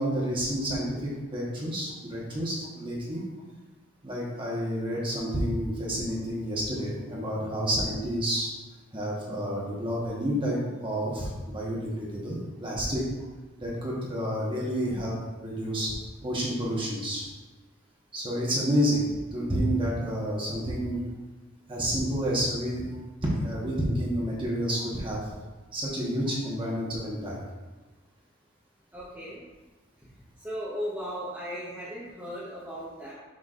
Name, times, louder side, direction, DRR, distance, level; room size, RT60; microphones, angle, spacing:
voice 1, 0.0-3.2 4.0-8.5 8.9-13.0 13.6-15.2 15.4-15.9 16.2-17.3 18.1-21.0 21.7-25.2 25.7-27.4, equal, 25° right, -5 dB, 1.2 m, -29 dB
voice 2, 28.9-29.4 30.4-33.1, equal, 10° right, -9 dB, 0.9 m, -37 dB
6.2 x 6.1 x 2.5 m, 1.2 s
head